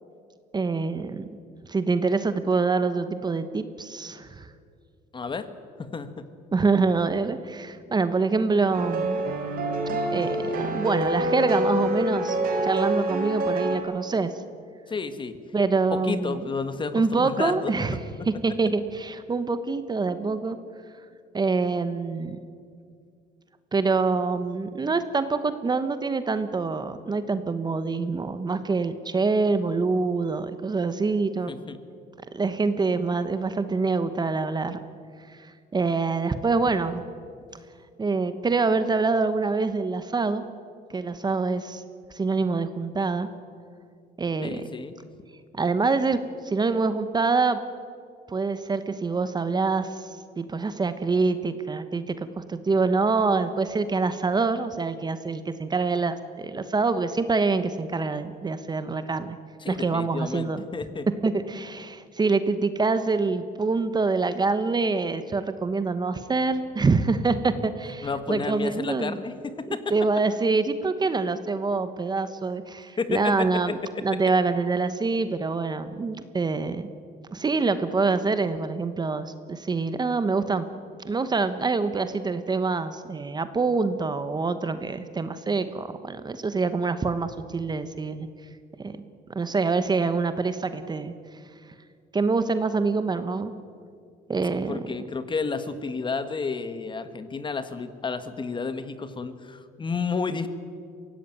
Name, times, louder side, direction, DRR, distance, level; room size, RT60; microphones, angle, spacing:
voice 1, 0.5-1.3 1.7-4.5 6.5-9.2 10.1-14.3 15.5-16.4 16.9-18.0 18.4-20.6 21.3-22.4 23.7-31.5 32.3-34.8 35.3-37.0 38.0-40.4 40.9-41.8 42.1-43.3 44.2-44.7 45.6-46.2 46.4-47.6 48.3-59.4 59.7-60.6 61.2-69.2 69.7-73.8 74.0-76.9 77.3-80.7 81.0-88.3 88.8-88.9 89.3-91.1 92.1-93.5 94.3-94.8, right 4 dB, 25° right, 11 dB, 1.1 m, -25 dB
voice 2, 5.1-5.5 5.8-6.3 14.9-15.4 15.9-17.7 31.5-31.8 44.4-44.9 59.6-61.1 68.0-69.9 73.0-74.2 94.7-100.5, left 4 dB, 30° left, 11 dB, 1.5 m, -31 dB
sound 1, 8.7-13.8, right 1 dB, 60° right, 3.7 m, -26 dB
23.5 x 17.0 x 9.3 m, 2.2 s
cardioid pair, 110°, 17 cm